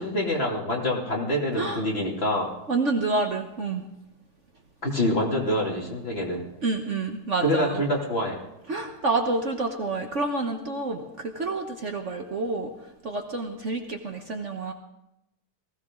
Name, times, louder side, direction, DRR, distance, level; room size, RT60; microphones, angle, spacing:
voice 1, 0.0-2.5 4.8-6.5 7.4-8.4, equal, 35° left, -2 dB, 2.9 m, -26 dB
voice 2, 2.7-3.8 6.6-7.8 8.7-12.7 13.0-14.7, right 3 dB, 50° right, 3 dB, 1.4 m, -28 dB
19.5 x 15.5 x 3.8 m, 0.88 s
omnidirectional pair, 1.8 m